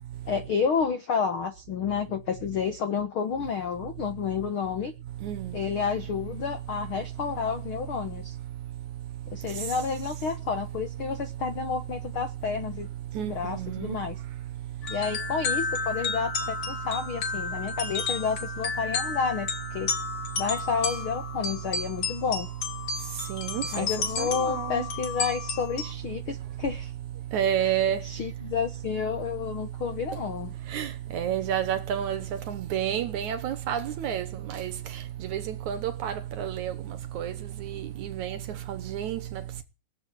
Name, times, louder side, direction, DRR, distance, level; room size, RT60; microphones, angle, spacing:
voice 1, 0.3-4.9 5.5-8.4 9.3-12.9 13.2-14.1 14.9-19.9 20.4-22.5 23.7-26.9 27.6-27.7 28.0-30.5, left 6 dB, 70° left, 1.2 m, -30 dB
voice 2, 13.2-14.0 23.3-23.9 24.2-24.9 27.3-28.0 30.7-32.2 32.5-34.3 34.5-34.7 35.3-36.7 37.2-37.3 38.0-38.4 38.7-39.2, right 10 dB, 65° right, 2.2 m, -29 dB
sound 1, 14.8-25.9, left 5 dB, 45° left, 2.7 m, -32 dB
18.5 x 7.7 x 9.2 m
omnidirectional pair, 4.2 m